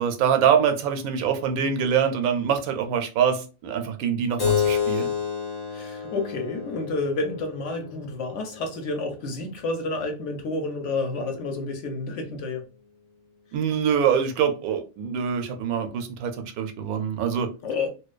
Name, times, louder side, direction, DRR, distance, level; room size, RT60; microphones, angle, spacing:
voice 1, 0.0-5.1 13.5-17.5, right 7 dB, 85° right, 1.0 m, -24 dB
Keyboard (musical), 4.4-9.5, left 7 dB, 30° left, 0.5 m, -29 dB
voice 2, 5.7-12.6 17.6-17.9, left 3 dB, 65° left, 0.9 m, -30 dB
2.5 x 2.2 x 2.3 m
omnidirectional pair, 1.5 m